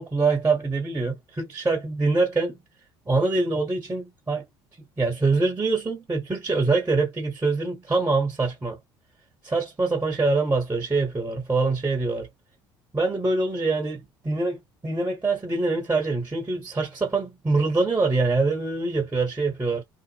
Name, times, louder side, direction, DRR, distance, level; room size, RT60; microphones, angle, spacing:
voice 1, 0.0-2.6 3.1-4.4 5.0-8.8 9.4-12.3 12.9-14.6 14.8-19.8, right 3 dB, 15° right, 1.1 m, -24 dB
2.5 x 2.0 x 2.8 m
hypercardioid pair, 65°, 12 cm